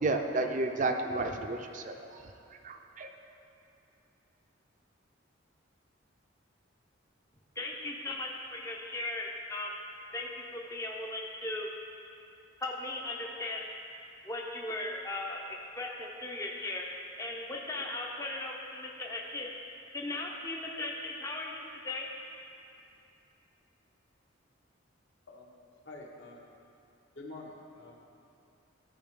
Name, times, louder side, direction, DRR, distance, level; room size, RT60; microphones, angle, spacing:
voice 1, 0.0-1.9 2.6-3.1, right 2 dB, 40° right, 4 dB, 0.5 m, -31 dB
voice 2, 7.6-9.7 10.1-11.7 12.6-13.6 14.3-19.5 19.9-22.1, left 2 dB, 15° left, -1 dB, 0.5 m, -37 dB
voice 3, 25.9-26.4 27.1-28.0, left 2 dB, 65° left, -2 dB, 1.2 m, -47 dB
14.0 x 4.8 x 3.7 m, 2.7 s
head